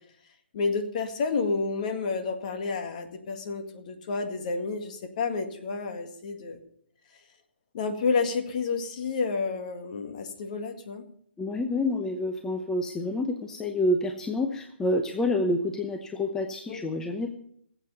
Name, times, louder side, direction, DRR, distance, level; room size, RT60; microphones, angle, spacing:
voice 1, 0.5-6.6 7.7-11.0 16.7-16.9, left 4 dB, 45° left, 6 dB, 1.9 m, -30 dB
voice 2, 11.4-17.3, left 1 dB, 10° left, 5 dB, 0.8 m, -28 dB
18.5 x 8.0 x 5.4 m, 0.68 s
figure-of-eight pair, 135°, 6 cm